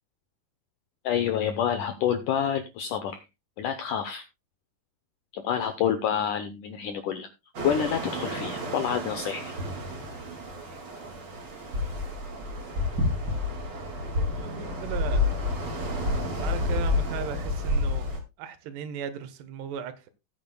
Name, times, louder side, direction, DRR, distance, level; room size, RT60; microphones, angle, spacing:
voice 1, 1.0-3.2 3.6-4.2 5.3-7.3 7.6-9.5, left 8 dB, 80° left, 1.8 m, -28 dB
sound 1, 7.5-18.2, left 2 dB, 35° right, 2.1 m, -30 dB
voice 2, 14.0-15.3 16.4-18.1 18.4-20.1, right 8 dB, 80° right, 3.2 m, -37 dB
18.0 x 8.8 x 2.2 m
omnidirectional pair, 4.7 m